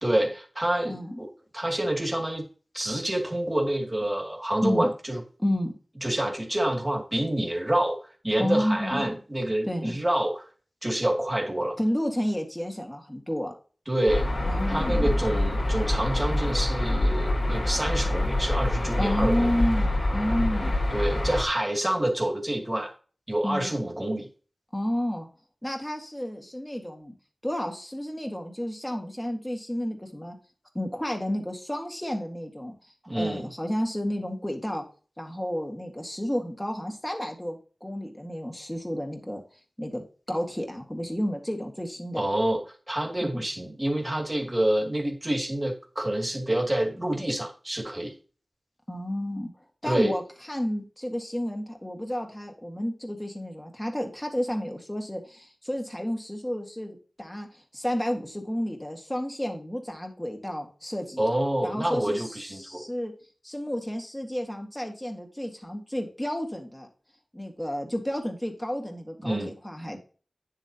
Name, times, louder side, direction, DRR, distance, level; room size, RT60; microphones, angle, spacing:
voice 1, 0.0-1.3 1.5-2.4 2.7-5.2 6.0-10.5 10.8-11.8 13.9-14.3 14.7-19.6 20.9-22.9 23.3-24.3 33.0-33.5 42.2-48.1 49.8-50.2 61.2-62.8 69.2-69.5, right 1 dB, 20° right, 1 dB, 2.5 m, -27 dB
voice 2, 0.8-1.2 4.6-4.9 5.4-5.7 8.4-9.1 9.7-10.0 11.8-13.5 14.5-15.2 19.0-20.7 23.4-23.7 24.7-25.3 25.6-27.1 27.4-30.4 30.7-32.7 33.2-34.8 35.2-39.4 39.8-40.0 40.3-42.3 43.2-43.4 48.9-49.5 49.8-50.2 50.5-61.3 61.6-63.1 63.4-66.9 67.3-69.4 69.6-70.0, equal, 10° left, 2 dB, 1.8 m, -31 dB
sound 1, 14.1-21.4, left 1 dB, 75° left, 3.4 m, -26 dB
9.6 x 7.6 x 2.9 m, 0.37 s
wide cardioid pair, 75°, 0 cm